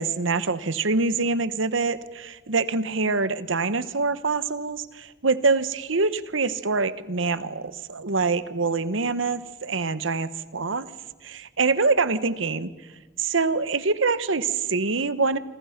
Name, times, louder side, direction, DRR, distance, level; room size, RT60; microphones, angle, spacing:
voice 1, 0.0-10.9 11.2-12.7 13.2-15.4, right 4 dB, 80° right, 14 dB, 1.1 m, -25 dB
27.5 x 26.0 x 5.9 m, 1.3 s
head